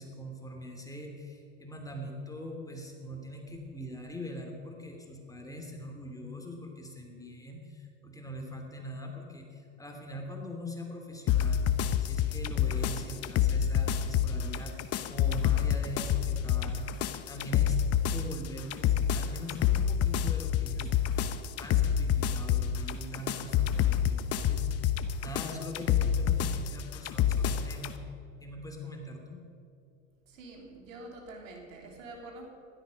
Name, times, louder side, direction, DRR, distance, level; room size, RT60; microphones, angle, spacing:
voice 1, 0.0-11.7 12.0-17.8 18.0-20.9 21.6-24.8 25.2-28.0 28.4-29.4, equal, 10° left, 1 dB, 2.8 m, -42 dB
sound 1, 11.3-27.9, left 9 dB, 40° left, 0.9 m, -28 dB
voice 2, 30.3-32.5, right 2 dB, 80° right, 1 dB, 3.4 m, -46 dB
16.0 x 12.5 x 5.3 m, 2.5 s
hypercardioid pair, 95°, 38 cm